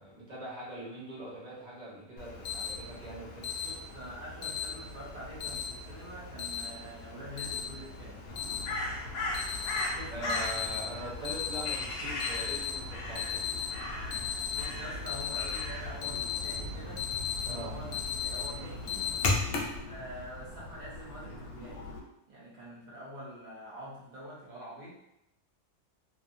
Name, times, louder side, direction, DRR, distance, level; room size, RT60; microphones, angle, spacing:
voice 1, 0.0-3.5 10.1-13.5 17.4-17.7, right 1 dB, 40° right, -7 dB, 0.7 m, -42 dB
Alarm, 2.2-19.8, left 5 dB, 85° left, 0.6 m, -36 dB
voice 2, 3.6-8.2 9.9-10.4 14.5-17.0 17.5-19.0 19.7-21.8 22.3-24.9, right 1 dB, 85° right, -7 dB, 0.4 m, -45 dB
Crow, 8.3-22.0, left 2 dB, 65° left, 1.0 m, -39 dB
2.6 x 2.4 x 2.6 m, 0.85 s
omnidirectional pair, 1.9 m